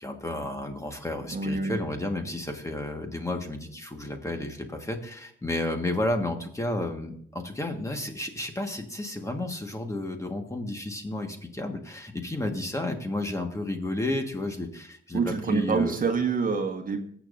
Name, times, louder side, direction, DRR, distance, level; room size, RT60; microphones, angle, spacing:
voice 1, 0.0-16.0, left 1 dB, 15° left, 4 dB, 1.5 m, -32 dB
voice 2, 1.3-1.8 15.1-17.0, right 5 dB, 45° right, 6 dB, 1.3 m, -26 dB
19.0 x 7.2 x 2.6 m, 0.63 s
cardioid pair, 90°, 20 cm